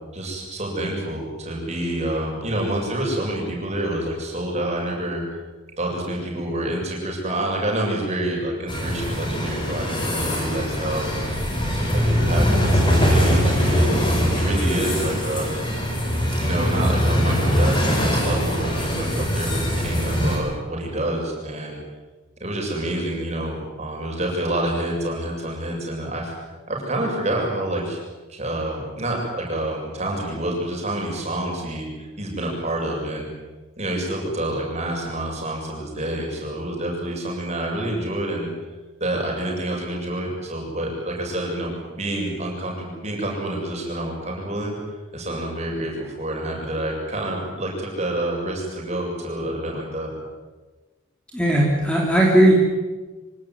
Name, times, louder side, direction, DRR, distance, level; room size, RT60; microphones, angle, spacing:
voice 1, 0.1-5.2 5.8-11.1 11.9-15.5 16.3-21.8 22.4-26.3 26.7-28.0 28.3-33.3 33.8-38.5 39.0-44.8 45.1-50.1, right 1 dB, 30° right, -1 dB, 7.5 m, -28 dB
sound 1, 8.7-20.4, equal, 20° left, 5.4 m, -22 dB
voice 2, 51.3-52.5, right 1 dB, 5° left, -2 dB, 3.4 m, -17 dB
25.0 x 18.5 x 9.5 m, 1.3 s
head